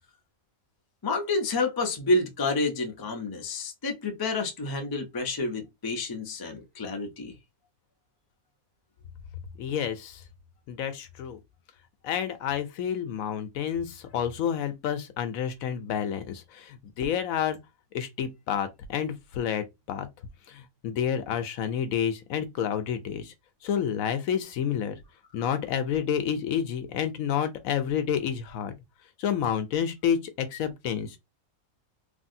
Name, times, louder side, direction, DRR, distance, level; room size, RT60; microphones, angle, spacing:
voice 1, 1.0-7.3, left 2 dB, 30° left, 0.4 m, -29 dB
voice 2, 9.6-10.2 10.7-11.4 12.0-17.6 17.9-20.1 20.5-23.3 23.6-24.9 25.3-28.7 29.2-31.2, left 8 dB, 80° left, 1.0 m, -29 dB
3.3 x 2.5 x 2.6 m
omnidirectional pair, 1.5 m